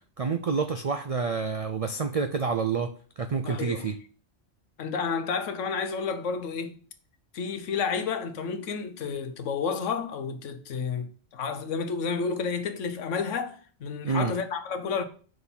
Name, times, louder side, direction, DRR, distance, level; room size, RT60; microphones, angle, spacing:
voice 1, 0.2-2.9 3.2-4.0 14.0-14.3, right 5 dB, 65° right, 0.3 m, -28 dB
voice 2, 3.4-3.9 4.8-6.8 7.3-11.1 11.3-15.0, left 5 dB, 85° left, 1.2 m, -31 dB
6.1 x 3.9 x 5.6 m
omnidirectional pair, 1.2 m